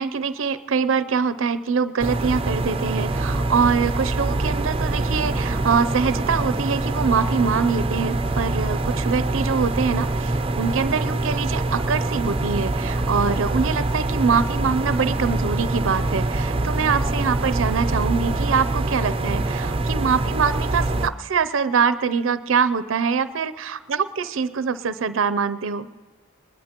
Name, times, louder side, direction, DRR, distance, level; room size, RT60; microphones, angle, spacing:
voice 1, 0.0-25.9, right 5 dB, 75° right, 15 dB, 0.5 m, -24 dB
sound 1, 2.0-21.1, right 2 dB, 30° right, 0.6 m, -24 dB
21.5 x 20.0 x 3.0 m, 1.4 s
head